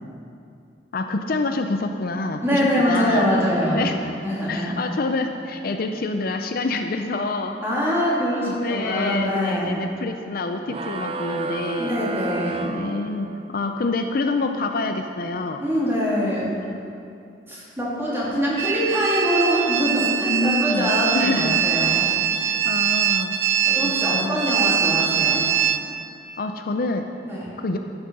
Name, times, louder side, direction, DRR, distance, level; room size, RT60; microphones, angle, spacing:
voice 1, 0.9-3.3 3.7-4.0 4.5-7.6 8.4-12.0 12.6-15.6 20.3-21.5 22.4-23.4 23.8-24.4 26.4-27.1 27.6-27.8, left 3 dB, 55° left, 6 dB, 0.5 m, -27 dB
voice 2, 2.4-3.9 4.2-4.8 7.6-9.7 11.8-12.7 15.6-16.5 17.5-22.1 23.7-25.4 27.2-27.5, equal, 15° right, -7 dB, 2.8 m, -23 dB
sound 1, 10.7-13.6, right 3 dB, 30° right, 0.4 m, -31 dB
sound 2, 18.6-25.8, right 9 dB, 85° right, 0.7 m, -22 dB
12.5 x 8.1 x 5.3 m, 2.6 s
head